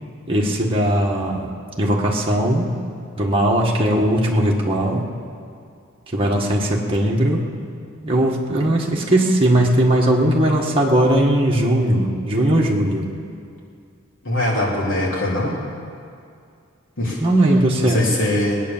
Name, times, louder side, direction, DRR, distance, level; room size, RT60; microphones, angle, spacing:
voice 1, 0.3-2.7 3.2-5.0 6.1-7.4 8.0-13.1 17.2-18.0, right 1 dB, 25° right, -3 dB, 1.6 m, -18 dB
voice 2, 14.2-15.5 17.0-17.2 17.8-18.6, left 1 dB, 70° left, -4 dB, 3.8 m, -22 dB
20.5 x 9.1 x 7.3 m, 2.4 s
head